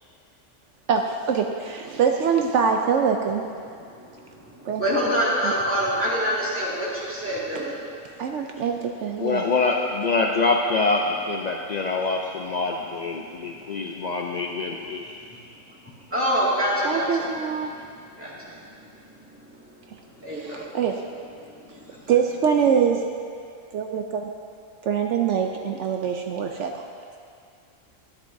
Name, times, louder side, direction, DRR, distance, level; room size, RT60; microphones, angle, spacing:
voice 1, 0.9-3.4 4.6-4.8 5.4-5.5 8.2-9.4 16.8-17.7 20.3-20.9 22.1-23.0 23.7-24.3 24.8-26.8, right 7 dB, 70° right, 3 dB, 0.9 m, -24 dB
voice 2, 3.7-7.8 15.2-15.4 15.7-20.8 21.4-22.1, equal, 10° right, -7 dB, 2.0 m, -28 dB
voice 3, 9.2-15.2, left 3 dB, 85° left, 1 dB, 0.3 m, -25 dB
12.5 x 10.0 x 2.6 m, 2.4 s
omnidirectional pair, 1.4 m